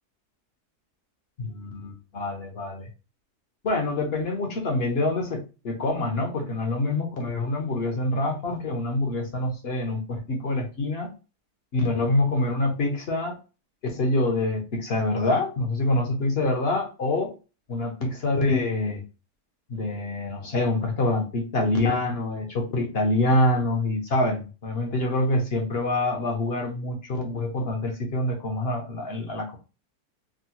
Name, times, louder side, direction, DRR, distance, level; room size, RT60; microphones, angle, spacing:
voice 1, 1.4-2.9 3.6-11.1 11.7-13.4 13.8-17.3 17.7-19.0 19.7-29.6, left 2 dB, 55° left, 2 dB, 0.7 m, -26 dB
3.6 x 2.0 x 2.7 m, 0.32 s
omnidirectional pair, 1.7 m